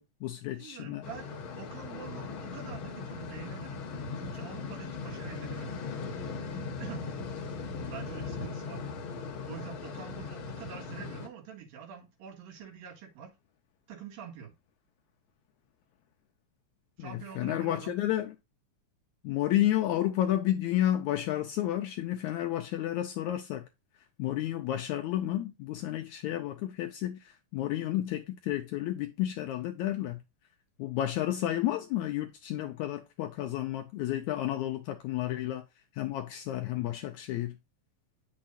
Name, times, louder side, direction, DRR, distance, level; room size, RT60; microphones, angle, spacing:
voice 1, 0.0-1.0 17.0-18.3 19.2-23.7 24.2-30.2 30.8-35.6 36.0-37.6, left 13 dB, 85° left, 1.7 m, -31 dB
voice 2, 0.6-3.9 4.1-5.8 6.8-7.1 7.8-8.8 9.4-13.3 13.9-14.5 17.0-18.0, right 7 dB, 85° right, 3.4 m, -45 dB
sound 1, 1.0-11.3, left 4 dB, 55° left, 1.5 m, -39 dB
8.7 x 6.4 x 2.6 m
omnidirectional pair, 3.9 m